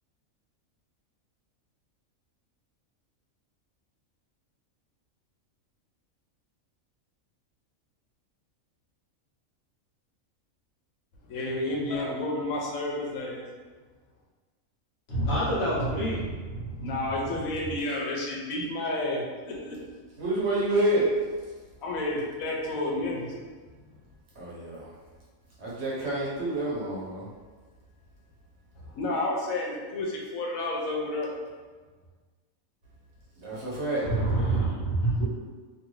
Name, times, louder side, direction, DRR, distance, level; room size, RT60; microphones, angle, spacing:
voice 1, 11.3-13.4 16.8-19.8 21.8-23.3 28.9-31.3, left 2 dB, 90° left, -2 dB, 1.1 m, -31 dB
voice 2, 15.1-17.0 34.0-35.2, right 1 dB, 55° left, -7 dB, 1.0 m, -27 dB
voice 3, 20.2-21.1 24.3-24.9 25.6-27.3 33.4-34.0, right 1 dB, 60° right, -7 dB, 1.2 m, -28 dB
2.8 x 2.6 x 3.0 m, 1.4 s
omnidirectional pair, 1.4 m